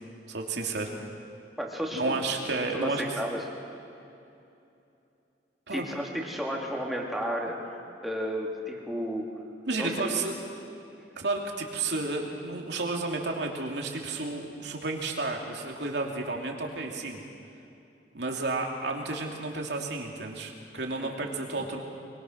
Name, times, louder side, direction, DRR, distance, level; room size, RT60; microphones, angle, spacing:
voice 1, 0.3-0.9 1.9-3.0 5.7-5.9 9.7-10.3 11.2-17.2 18.1-21.8, right 3 dB, 75° right, 1 dB, 2.8 m, -31 dB
voice 2, 1.6-2.2 2.7-3.4 5.7-9.3 9.8-10.3 21.0-21.3 21.6-21.7, equal, ahead, -2 dB, 2.6 m, -33 dB
23.5 x 22.5 x 6.3 m, 2.7 s
head